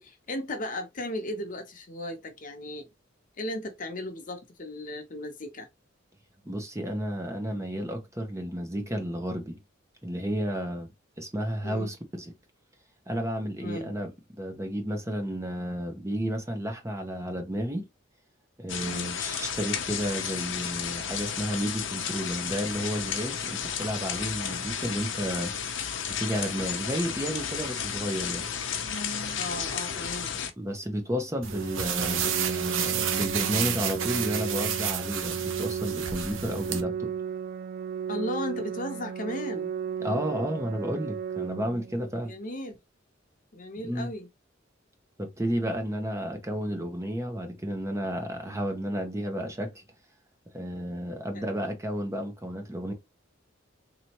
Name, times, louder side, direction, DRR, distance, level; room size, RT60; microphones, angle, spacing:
voice 1, 0.0-2.9 3.4-5.7 11.6-11.9 13.6-13.9 18.8-19.1 29.4-30.3 38.1-39.7 42.2-42.8 43.5-44.3 51.3-51.5, left 1 dB, 45° left, 1.0 m, -36 dB
voice 2, 6.4-9.6 10.0-10.9 11.2-12.3 13.1-17.8 18.6-25.6 26.1-28.5 30.6-37.1 40.0-42.3 43.8-44.1 45.2-49.8 50.5-52.9, equal, 15° right, 1.0 m, -32 dB
sound 1, 18.7-30.5, left 7 dB, 70° left, 0.8 m, -33 dB
sound 2, 31.4-36.8, right 7 dB, 80° right, 0.8 m, -31 dB
Organ, 31.5-42.5, right 7 dB, 50° right, 0.3 m, -35 dB
4.1 x 3.0 x 3.0 m
head